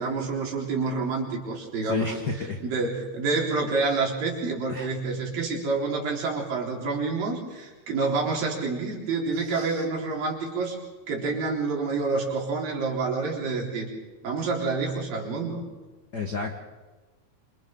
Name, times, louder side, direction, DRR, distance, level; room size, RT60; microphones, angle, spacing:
voice 1, 0.0-10.8 11.1-13.9 14.2-15.6, right 4 dB, 70° right, -1 dB, 5.4 m, -28 dB
voice 2, 1.9-2.6 4.7-4.9 9.4-9.8 16.1-16.5, left 4 dB, 65° left, 4 dB, 1.0 m, -32 dB
27.5 x 27.0 x 3.8 m, 1.3 s
omnidirectional pair, 4.1 m